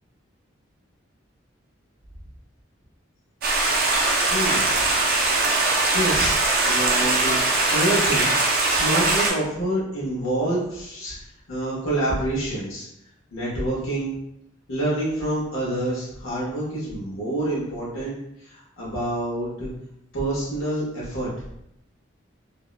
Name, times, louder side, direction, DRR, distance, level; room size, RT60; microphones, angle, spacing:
Stream, 3.4-9.3, right 2 dB, 45° right, 0.4 m, -21 dB
voice 1, 4.3-4.7 5.9-8.3 8.6-11.1 11.5-12.9 13.3-14.1 14.7-19.7 20.1-21.3, right 1 dB, 90° left, -6 dB, 0.9 m, -27 dB
2.6 x 2.1 x 2.4 m, 0.78 s
head